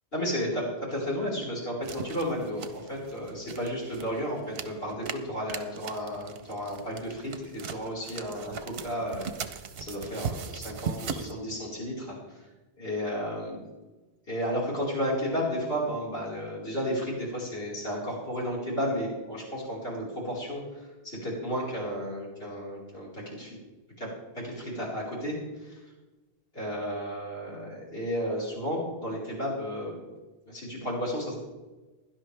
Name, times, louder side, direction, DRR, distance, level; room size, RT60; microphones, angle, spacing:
voice 1, 0.1-12.1 12.8-13.6 14.3-23.5 24.0-24.1 24.3-25.4 25.6-25.8 26.5-30.0 30.5-31.4, equal, 70° left, -6 dB, 4.8 m, -33 dB
sound 1, 1.8-11.3, right 6 dB, 70° right, 1.0 m, -39 dB
17.0 x 11.5 x 3.4 m, 1.2 s
omnidirectional pair, 1.1 m